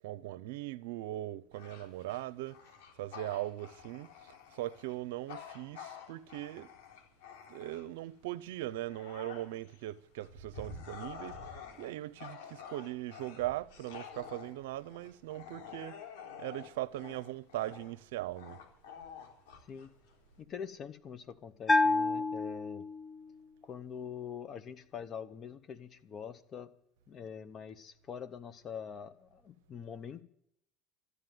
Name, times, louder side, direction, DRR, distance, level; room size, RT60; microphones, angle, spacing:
voice 1, 0.0-2.6 3.0-6.7 7.5-16.0 16.4-18.6, right 15 dB, 85° right, 0.7 m, -40 dB
Bark / Growling, 1.5-8.1 8.5-20.4, left 6 dB, 85° left, 3.5 m, -49 dB
voice 2, 20.4-22.8 23.6-26.7 27.1-30.2, left 7 dB, 40° left, 1.6 m, -44 dB
Bell, 21.7-23.3, left 3 dB, 20° left, 0.5 m, -29 dB
13.5 x 9.6 x 9.3 m
supercardioid pair, 100°, 0 cm